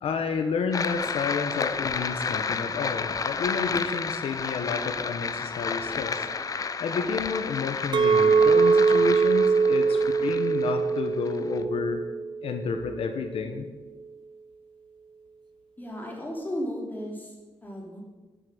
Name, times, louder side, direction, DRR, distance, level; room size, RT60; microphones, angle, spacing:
voice 1, 0.0-6.3 6.8-12.0 12.4-13.7, left 5 dB, 90° left, 6 dB, 1.0 m, -30 dB
sound 1, 0.7-11.6, left 5 dB, 40° left, 0.6 m, -31 dB
Chink clink, 7.9-13.1, right 5 dB, 55° right, 0.9 m, -22 dB
voice 2, 15.8-17.3 17.6-18.0, equal, 20° left, 0 dB, 3.0 m, -34 dB
12.0 x 7.6 x 6.5 m, 1.3 s
wide cardioid pair, 125°, 9 cm